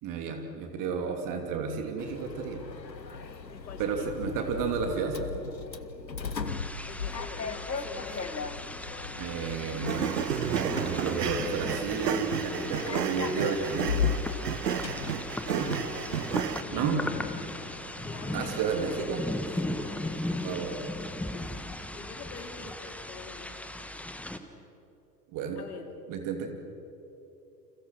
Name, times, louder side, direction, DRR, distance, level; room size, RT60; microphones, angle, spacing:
voice 1, 0.0-2.6 3.8-5.4 9.2-14.0 15.5-15.7 16.7-17.0 18.3-19.2 20.4-20.9 25.3-25.6 26.1-26.5, right 5 dB, 40° right, 4 dB, 3.0 m, -32 dB
Sliding door, 2.0-21.6, left 6 dB, 85° left, 1.3 m, -38 dB
voice 2, 3.5-4.1 6.9-8.7 15.4-16.9 17.1-17.4 18.0-18.9 19.3-20.0 20.3-20.8 21.3-23.6 25.5-25.9, left 5 dB, 65° left, 6 dB, 3.0 m, -46 dB
sound 1, 6.5-24.4, left 1 dB, 5° left, 1.4 m, -38 dB
sound 2, 9.9-16.6, right 8 dB, 70° right, 1.3 m, -32 dB
29.5 x 27.0 x 6.3 m, 3.0 s
figure-of-eight pair, 85°, 50 cm